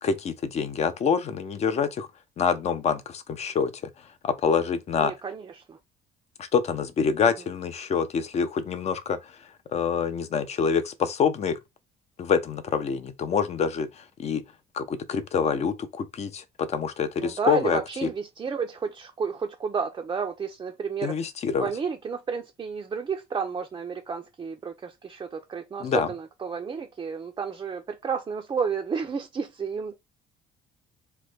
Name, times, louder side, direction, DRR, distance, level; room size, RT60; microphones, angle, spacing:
voice 1, 0.0-2.1 2.4-3.7 4.2-5.1 6.4-11.6 12.2-14.4 14.7-18.1 21.0-21.7 25.8-26.1, left 6 dB, 40° left, 0.5 m, -26 dB
voice 2, 5.0-5.8 17.2-21.2 21.6-30.0, right 5 dB, 25° right, 0.4 m, -31 dB
3.1 x 2.1 x 3.2 m
cardioid pair, 110°, 17 cm